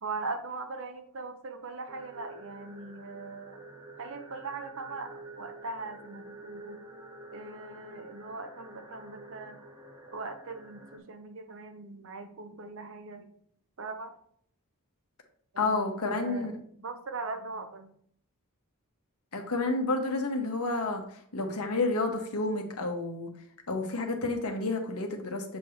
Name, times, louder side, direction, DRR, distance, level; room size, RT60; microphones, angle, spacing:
voice 1, 0.0-3.6 4.0-6.8 7.3-9.6 10.1-13.3 13.8-14.1 15.5-16.5 16.8-18.0, right 3 dB, 60° right, 7 dB, 0.8 m, -40 dB
sound 1, 1.9-11.0, right 2 dB, 20° right, 0.9 m, -48 dB
voice 2, 15.6-16.5 19.3-23.3 23.7-25.6, left 3 dB, 75° left, 3 dB, 1.1 m, -30 dB
7.5 x 2.9 x 4.9 m, 0.63 s
head